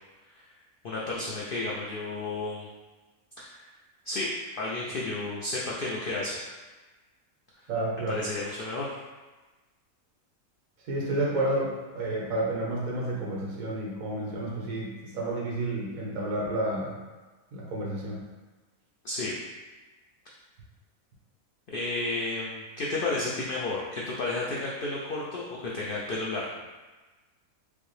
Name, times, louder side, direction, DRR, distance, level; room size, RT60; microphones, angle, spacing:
voice 1, 0.8-2.7 3.4-3.6 4.1-6.5 8.1-9.0 19.0-19.4 21.7-26.4, left 2 dB, 75° left, -4 dB, 0.5 m, -32 dB
voice 2, 7.7-8.2 10.8-16.9 17.5-18.3, right 1 dB, 70° right, -4 dB, 1.3 m, -30 dB
5.0 x 2.1 x 3.2 m, 1.2 s
omnidirectional pair, 1.5 m